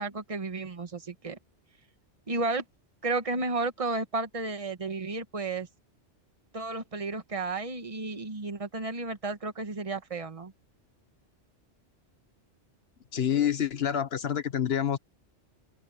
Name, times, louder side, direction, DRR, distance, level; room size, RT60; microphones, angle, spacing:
voice 1, 0.0-1.4 2.3-2.6 3.0-5.7 6.5-10.5, right 3 dB, 30° right, 1.4 m, -32 dB
voice 2, 13.1-15.0, left 9 dB, 60° left, 1.3 m, -27 dB
omnidirectional pair, 1.2 m